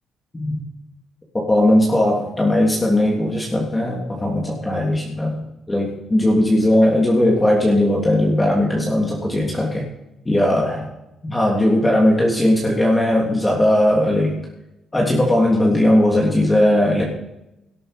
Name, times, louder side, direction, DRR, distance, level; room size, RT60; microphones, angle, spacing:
voice 1, 0.3-0.6 1.3-5.4 5.7-9.9 10.2-10.9 11.2-14.3 14.9-17.0, left 1 dB, 15° left, -3 dB, 3.1 m, -18 dB
17.5 x 8.9 x 5.2 m, 0.91 s
cardioid pair, 90°, 0 cm